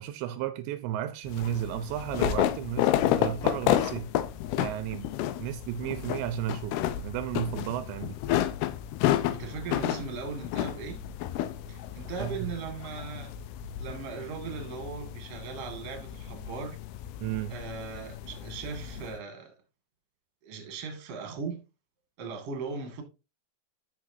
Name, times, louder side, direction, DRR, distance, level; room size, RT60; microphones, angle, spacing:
voice 1, 0.0-4.1 4.6-5.1 5.4-6.8 7.0-8.2 12.2-12.5 17.2-17.6, right 12 dB, 80° right, 2.9 m, -33 dB
sound 1, 1.3-19.1, left 12 dB, 90° left, 2.2 m, -31 dB
voice 2, 9.3-11.0 11.7-13.4 13.8-16.8 17.5-19.5 20.4-21.6 22.2-23.0, right 5 dB, 45° right, 2.2 m, -38 dB
12.0 x 5.9 x 2.7 m
omnidirectional pair, 5.2 m